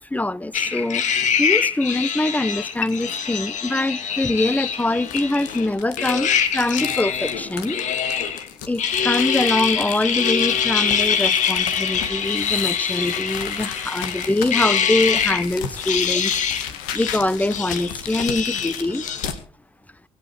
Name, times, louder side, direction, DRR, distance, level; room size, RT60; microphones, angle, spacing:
voice 1, 0.1-7.8 8.7-16.3 16.9-19.0, left 2 dB, 10° left, 0.8 m, -24 dB
sound 1, 0.5-5.7 6.0-8.5 8.8-15.5 15.8-16.7 16.9-19.3, left 7 dB, 65° left, 2.3 m, -24 dB
sound 2, 1.1-1.6 2.1-2.2 2.8-3.3 4.2-19.4, left 8 dB, 85° left, 2.0 m, -35 dB
23.5 x 9.0 x 4.6 m
supercardioid pair, 65°, 13 cm